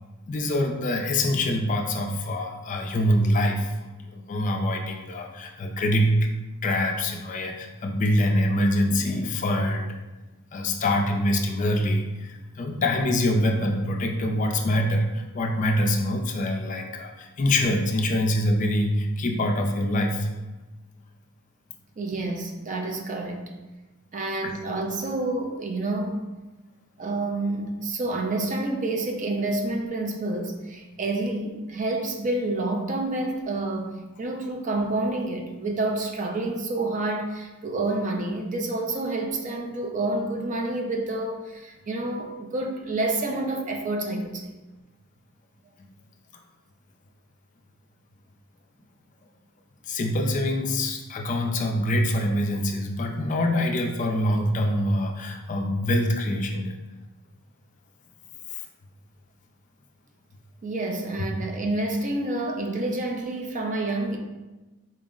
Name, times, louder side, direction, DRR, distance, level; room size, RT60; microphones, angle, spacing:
voice 1, 0.3-3.7 4.1-6.3 6.6-10.0 10.5-20.3 24.4-24.5 49.9-56.7, left 1 dB, 35° left, 2 dB, 0.3 m, -25 dB
voice 2, 22.0-23.5 24.1-26.3 27.0-33.9 34.2-44.6 60.6-64.2, right 2 dB, 35° right, 2 dB, 0.4 m, -28 dB
4.3 x 2.0 x 3.6 m, 1.1 s
head